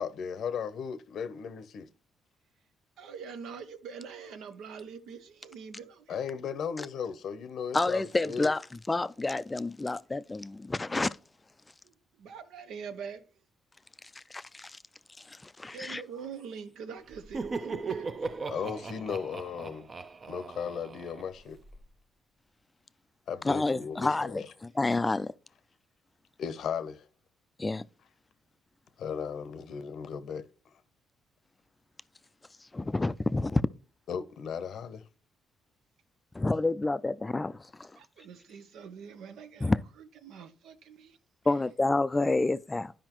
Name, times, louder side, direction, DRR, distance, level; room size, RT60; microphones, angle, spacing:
voice 1, 0.0-1.9 6.1-8.5 18.5-19.9 20.3-21.6 23.3-24.5 26.4-27.1 29.0-30.5 34.1-35.0, left 7 dB, 65° left, 0.7 m, -36 dB
voice 2, 3.0-6.3 11.8-13.4 15.7-19.2 38.0-39.7 40.0-41.2 41.5-41.6, right 6 dB, 80° right, 0.8 m, -44 dB
voice 3, 7.7-8.6 8.9-11.1 14.2-14.8 15.3-16.0 23.4-25.3 27.6-27.8 32.7-33.6 36.3-37.9 39.6-39.8 41.5-42.9, left 2 dB, 20° left, 0.3 m, -29 dB
Laughter, 17.1-21.8, right 4 dB, 40° right, 0.6 m, -38 dB
11.0 x 5.0 x 3.0 m
cardioid pair, 90°, 0 cm